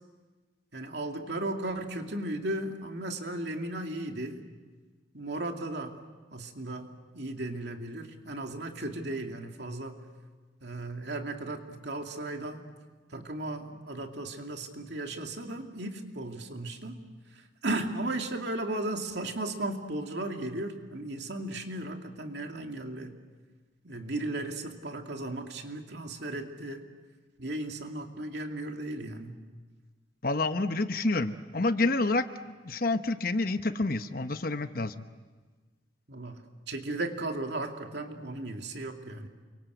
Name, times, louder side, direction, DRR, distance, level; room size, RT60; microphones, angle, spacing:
voice 1, 0.7-4.4 5.1-6.0 6.3-10.0 10.6-12.7 13.1-17.0 17.3-23.2 23.8-26.8 27.4-29.4 36.1-39.3, right 2 dB, 60° right, 3 dB, 2.6 m, -36 dB
voice 2, 30.2-35.0, left 2 dB, 50° left, 9 dB, 1.0 m, -28 dB
30.0 x 24.0 x 8.1 m, 1.3 s
head